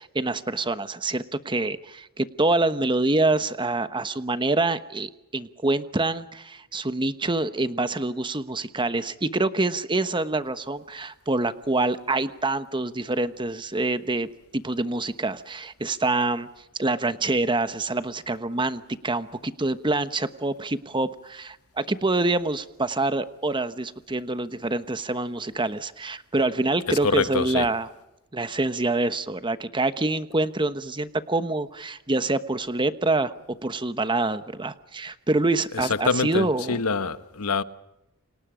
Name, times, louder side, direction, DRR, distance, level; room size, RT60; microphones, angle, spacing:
voice 1, 0.0-16.5 16.8-27.9 28.3-36.8, right 2 dB, 20° right, 1.1 m, -26 dB
voice 2, 26.9-27.7 35.7-37.6, left 4 dB, 80° left, 1.1 m, -25 dB
29.5 x 25.5 x 5.1 m
head